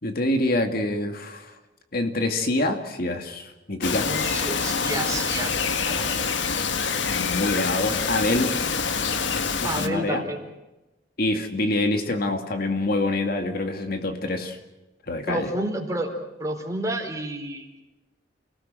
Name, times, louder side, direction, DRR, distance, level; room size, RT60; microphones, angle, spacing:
voice 1, 0.0-1.5 1.9-4.1 7.1-8.5 8.9-9.0 9.3-10.2 11.2-14.6 15.1-15.5, left 2 dB, 55° left, 5 dB, 2.3 m, -26 dB
Bird vocalization bird call bird song, 3.8-9.9, left 5 dB, 85° left, 1.7 m, -26 dB
voice 2, 4.1-6.2 9.6-10.5 15.3-17.8, right 1 dB, 20° right, 2 dB, 4.4 m, -30 dB
29.5 x 18.5 x 7.7 m, 1.1 s
head